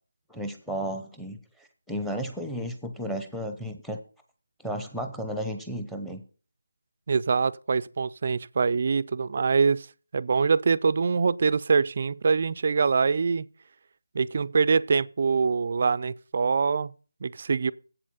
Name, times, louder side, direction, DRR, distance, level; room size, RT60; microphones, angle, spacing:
voice 1, 0.3-4.0 4.6-6.2, equal, ahead, 0.8 m, -33 dB
voice 2, 7.1-9.9 10.1-13.4 14.1-16.9 17.2-17.7, right 5 dB, 45° right, 0.3 m, -24 dB
8.1 x 7.5 x 5.5 m
figure-of-eight pair, 165°, 0 cm